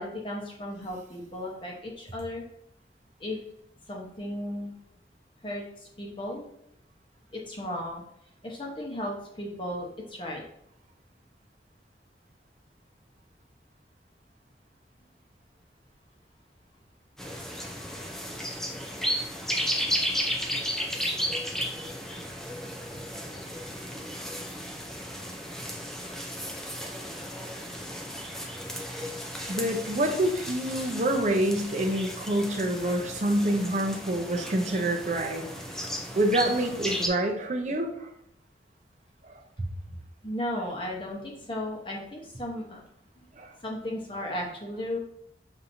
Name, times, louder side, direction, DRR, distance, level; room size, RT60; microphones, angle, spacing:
voice 1, 0.0-2.4 3.2-3.4 3.9-4.7 5.4-6.5 7.3-8.0 8.4-10.4 40.2-42.8 43.2-43.3 43.6-45.0, left 1 dB, 30° left, -1 dB, 0.9 m, -35 dB
sound 1, 17.2-37.1, equal, 5° left, 0.4 m, -34 dB
voice 2, 29.5-35.4 36.1-38.1 39.2-39.7 43.4-43.5, right 1 dB, 40° right, 2 dB, 0.6 m, -27 dB
6.8 x 2.8 x 2.6 m, 0.74 s
head